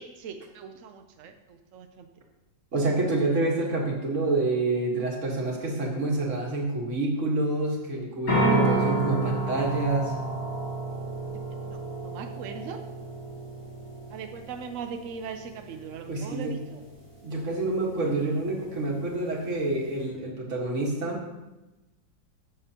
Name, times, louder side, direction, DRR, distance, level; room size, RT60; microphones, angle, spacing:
voice 1, 0.0-2.1 11.3-11.8 12.0-12.8 14.1-16.8, right 6 dB, 75° right, 6 dB, 0.7 m, -40 dB
voice 2, 2.7-10.2 16.1-16.6 17.2-21.2, right 2 dB, 40° right, -1 dB, 1.9 m, -27 dB
sound 1, 8.3-20.0, right 2 dB, 40° left, 2.9 m, -31 dB
15.5 x 6.7 x 2.9 m, 1.0 s
omnidirectional pair, 2.1 m